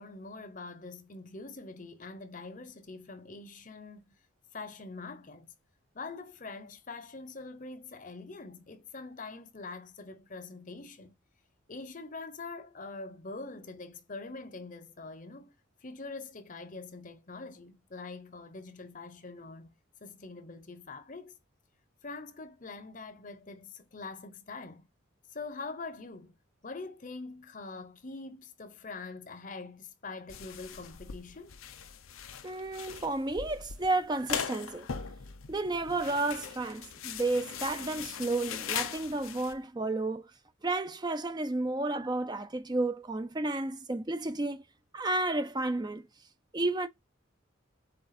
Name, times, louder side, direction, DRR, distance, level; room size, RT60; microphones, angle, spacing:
voice 1, 0.0-4.0 4.5-5.5 5.9-11.1 11.7-15.5 15.8-19.7 20.0-21.4 22.0-24.9 25.3-26.3 26.6-31.5, left 3 dB, 40° left, 0.8 m, -44 dB
sound 1, 30.3-39.5, left 7 dB, 90° left, 0.7 m, -40 dB
voice 2, 32.4-34.9 35.5-40.3 40.6-44.6 44.9-46.1 46.5-46.9, right 2 dB, 20° right, 0.4 m, -32 dB
7.9 x 3.4 x 4.2 m
head